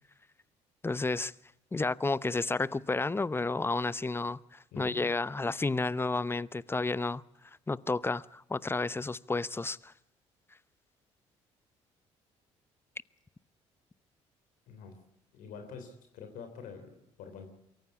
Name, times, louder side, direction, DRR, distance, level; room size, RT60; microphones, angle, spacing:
voice 1, 0.8-1.3 1.7-7.2 7.7-9.9, left 3 dB, 15° left, 0.7 m, -31 dB
voice 2, 4.7-5.0 14.7-15.0 15.3-17.5, left 5 dB, 70° left, 3.5 m, -46 dB
23.5 x 14.5 x 8.5 m
hypercardioid pair, 55°, 15 cm